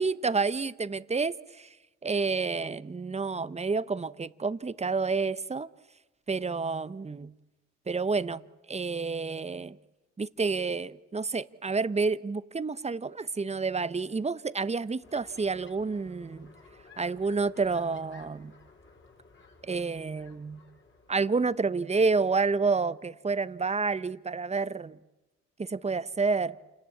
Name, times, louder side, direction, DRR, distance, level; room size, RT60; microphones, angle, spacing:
voice 1, 0.0-1.7 2.0-5.7 6.3-7.3 7.9-8.4 8.7-9.8 10.2-16.5 17.0-18.5 19.6-20.6 21.1-25.0 25.6-26.6, right 4 dB, 20° right, 16 dB, 0.8 m, -29 dB
sound 1, 15.0-21.6, left 4 dB, 40° left, 4.9 m, -55 dB
28.5 x 19.0 x 8.5 m, 1.1 s
cardioid pair, 90°, 30 cm